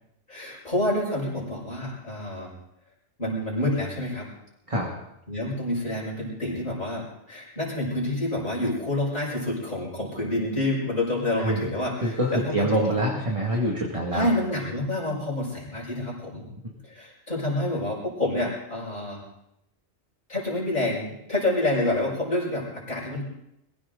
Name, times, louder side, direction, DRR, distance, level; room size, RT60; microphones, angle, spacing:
voice 1, 0.3-2.5 3.2-4.3 5.3-13.0 14.1-16.5 16.8-19.2 20.3-23.2, left 1 dB, 40° left, -6 dB, 5.7 m, -28 dB
voice 2, 12.0-14.3 16.6-16.7, right 1 dB, 25° right, -2 dB, 2.2 m, -25 dB
23.5 x 16.0 x 3.9 m, 0.82 s
omnidirectional pair, 1.2 m